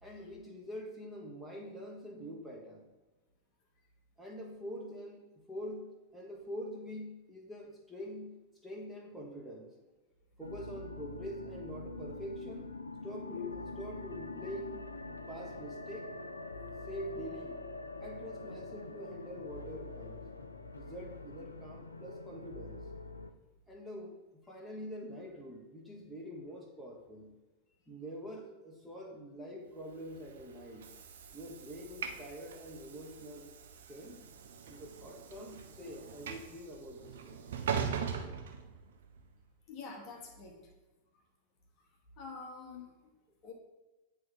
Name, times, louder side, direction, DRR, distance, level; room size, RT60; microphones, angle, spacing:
voice 1, 0.0-2.8 4.2-8.4 8.6-9.7 10.4-12.7 13.0-14.8 15.1-16.1 16.9-17.6 18.0-20.2 20.7-22.8 23.7-27.3 27.9-30.9 31.3-33.5 33.9-34.3 34.7-37.5, equal, ahead, -2 dB, 1.1 m, -45 dB
sound 1, 10.4-23.3, left 2 dB, 80° left, 0.4 m, -45 dB
Train / Sliding door, 30.0-39.2, right 7 dB, 60° right, 0.5 m, -41 dB
voice 2, 39.7-40.6 41.1-41.2 42.2-42.9 43.4-43.5, left 4 dB, 40° left, 2 dB, 1.1 m, -46 dB
8.9 x 3.1 x 3.8 m, 1.1 s
figure-of-eight pair, 90°, 0 cm